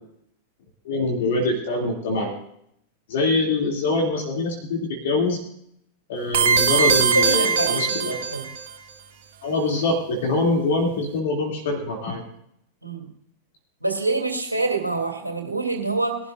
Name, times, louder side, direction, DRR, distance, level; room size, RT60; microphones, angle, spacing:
voice 1, 0.8-2.3 3.1-5.4 6.1-8.2 9.4-12.2, left 2 dB, 55° left, -1 dB, 2.8 m, -24 dB
sound 1, 6.3-8.7, right 6 dB, 55° right, 1.9 m, -21 dB
voice 2, 7.1-8.0 8.3-8.4 12.8-13.0 13.8-16.2, right 3 dB, 85° right, 2 dB, 2.8 m, -26 dB
22.0 x 12.0 x 2.6 m, 0.72 s
figure-of-eight pair, 90°, 0 cm